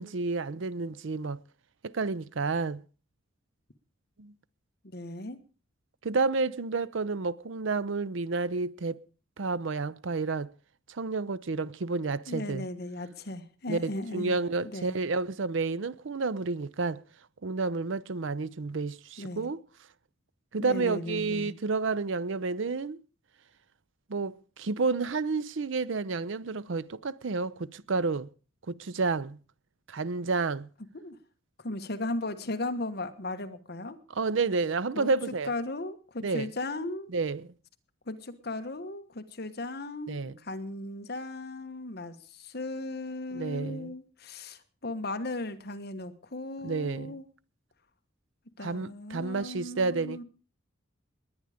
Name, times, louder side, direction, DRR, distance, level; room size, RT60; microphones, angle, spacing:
voice 1, 0.0-1.4 1.8-2.8 4.2-4.3 6.0-9.0 9.4-10.5 10.9-12.7 13.7-17.0 17.4-19.6 20.5-23.0 24.1-28.3 28.7-29.4 29.9-30.7 34.1-35.5 36.2-36.5 37.1-37.5 40.1-40.3 43.3-43.9 46.6-47.2 48.6-50.2, right 3 dB, 65° right, 0.6 m, -30 dB
voice 2, 4.8-5.4 12.3-14.3 14.6-15.0 19.2-19.5 20.6-21.5 30.9-31.2 31.6-34.0 34.9-35.1 35.4-37.1 38.1-47.3 48.6-50.2, left 2 dB, 50° left, 1.3 m, -36 dB
19.5 x 9.8 x 5.0 m
head